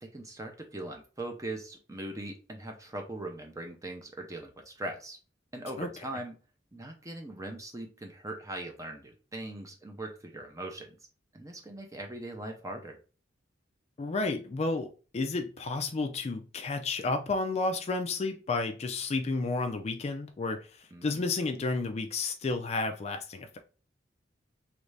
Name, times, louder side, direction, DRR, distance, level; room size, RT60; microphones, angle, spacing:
voice 1, 0.0-5.2 5.5-6.4 6.7-11.0 11.3-13.0 20.9-21.3, right 1 dB, 20° right, 0.6 m, -40 dB
voice 2, 14.0-20.7 21.0-23.6, left 3 dB, 35° left, 0.4 m, -31 dB
3.1 x 2.6 x 3.2 m
head